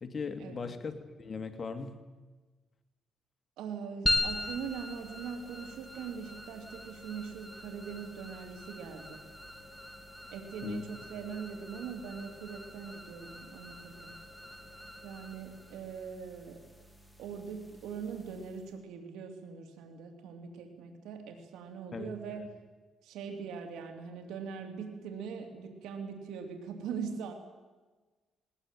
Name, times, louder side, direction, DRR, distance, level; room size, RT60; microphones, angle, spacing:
voice 1, 0.0-2.0 10.6-10.8 21.9-22.5, left 5 dB, 40° left, 7 dB, 2.4 m, -39 dB
voice 2, 3.6-9.3 10.3-14.1 15.0-16.6 17.2-22.5 23.0-27.3, right 6 dB, 90° right, 5 dB, 2.9 m, -41 dB
sound 1, 4.1-18.7, left 2 dB, ahead, 3.6 m, -40 dB
20.0 x 19.5 x 9.1 m, 1.3 s
cardioid pair, 90°, 0 cm